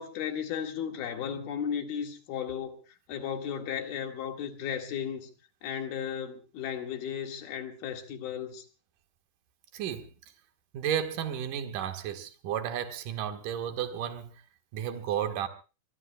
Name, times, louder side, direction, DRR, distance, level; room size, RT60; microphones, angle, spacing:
voice 1, 0.0-2.8 3.1-5.3 5.6-8.7, left 8 dB, 70° left, 3.6 m, -35 dB
voice 2, 9.7-10.1 10.7-14.3 14.7-15.5, right 9 dB, 60° right, 2.8 m, -33 dB
25.5 x 23.0 x 2.2 m
omnidirectional pair, 4.5 m